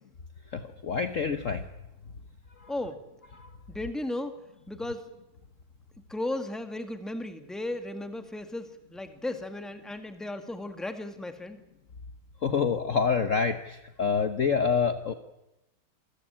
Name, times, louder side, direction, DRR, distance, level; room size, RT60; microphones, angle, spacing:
voice 1, 0.5-1.6 2.6-2.7 3.4-3.5 12.4-15.1, left 5 dB, 45° left, 9 dB, 1.2 m, -27 dB
voice 2, 2.7-3.0 3.7-4.4 4.7-5.1 6.1-11.6, left 1 dB, ahead, 7 dB, 1.7 m, -35 dB
27.5 x 15.0 x 10.0 m, 0.94 s
omnidirectional pair, 2.2 m